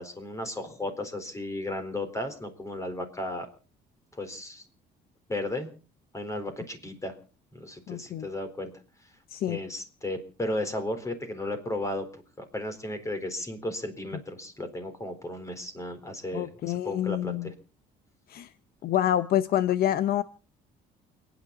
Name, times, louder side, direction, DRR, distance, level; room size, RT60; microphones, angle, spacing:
voice 1, 0.0-3.5 4.1-4.6 5.3-5.7 6.1-7.1 7.5-8.7 9.5-12.1 12.4-17.5, left 1 dB, 20° left, 8 dB, 4.2 m, -34 dB
voice 2, 7.9-8.3 9.3-9.6 16.3-17.5 18.3-18.5 18.8-20.2, left 11 dB, 65° left, 14 dB, 0.8 m, -27 dB
29.0 x 10.0 x 4.2 m, 0.38 s
cardioid pair, 110°, 17 cm